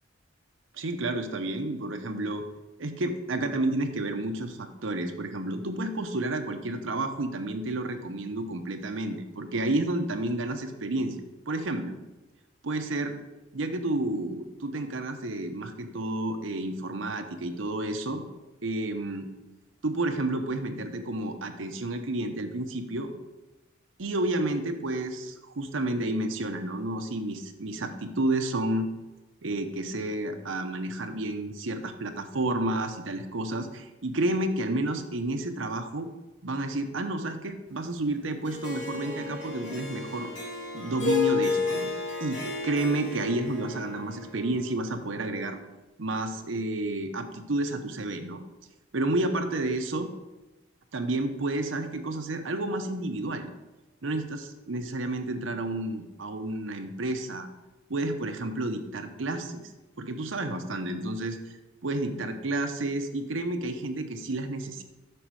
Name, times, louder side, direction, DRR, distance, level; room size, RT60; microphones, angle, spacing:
voice 1, 0.7-2.4 2.8-11.2 11.5-11.9 12.6-13.1 13.5-18.2 18.6-19.3 19.8-23.1 24.0-28.9 29.4-36.1 36.4-40.3 40.7-41.9 42.2-45.6 46.0-48.4 48.9-50.1 50.9-53.5 54.0-57.5 57.9-59.6 60.0-61.4 61.8-64.8, right 2 dB, 90° right, 6 dB, 0.9 m, -30 dB
Harp, 38.4-44.8, left 4 dB, 65° left, 2.5 m, -32 dB
7.8 x 6.1 x 4.7 m, 1.1 s
head